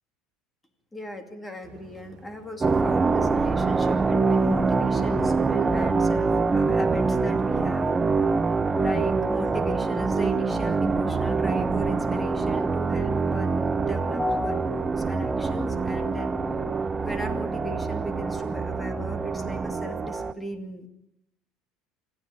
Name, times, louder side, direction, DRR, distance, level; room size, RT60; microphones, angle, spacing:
voice 1, 0.9-7.9 8.7-16.4 17.0-20.9, equal, 10° left, 7 dB, 2.6 m, -36 dB
sound 1, 1.6-7.9, right 5 dB, 45° right, 3.7 m, -49 dB
sound 2, 2.6-20.3, right 4 dB, 15° right, 0.8 m, -25 dB
25.0 x 14.5 x 9.9 m, 0.82 s
cardioid pair, 155°, 0 cm